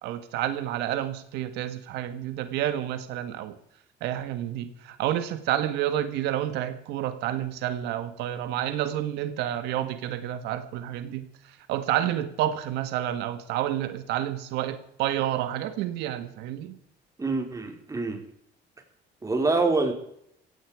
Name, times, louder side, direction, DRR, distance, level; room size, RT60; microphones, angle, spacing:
voice 1, 0.0-3.6 4.0-16.8, right 12 dB, 90° right, 10 dB, 1.7 m, -29 dB
voice 2, 17.2-18.2 19.2-19.9, right 3 dB, 20° right, 3 dB, 4.3 m, -25 dB
16.5 x 16.5 x 5.0 m, 0.72 s
cardioid pair, 110°, 17 cm